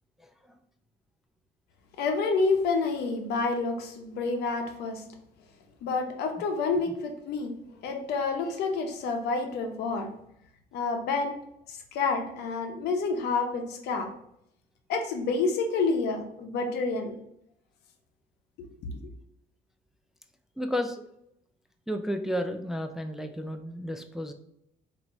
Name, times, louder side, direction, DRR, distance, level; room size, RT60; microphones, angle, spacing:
voice 1, 2.0-5.0 5.8-7.5 7.8-10.1 10.7-11.4 11.7-14.1 14.9-17.1 18.6-18.7, left 4 dB, 75° left, 5 dB, 0.8 m, -28 dB
voice 2, 20.6-21.0 21.9-24.3, equal, ahead, 6 dB, 0.3 m, -32 dB
4.5 x 2.7 x 3.0 m, 0.75 s
cardioid pair, 110°, 17 cm